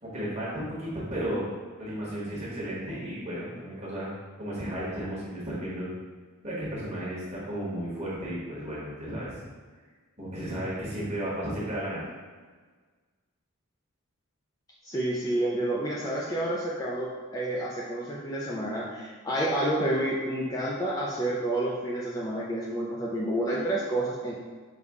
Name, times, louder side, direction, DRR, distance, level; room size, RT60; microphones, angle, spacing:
voice 1, 0.0-1.5 1.8-4.1 4.4-5.9 6.4-9.4 10.2-12.0, right 1 dB, 30° right, -7 dB, 1.3 m, -34 dB
voice 2, 14.8-24.3, right 1 dB, 15° left, -6 dB, 0.4 m, -29 dB
5.3 x 2.3 x 3.5 m, 1.5 s
head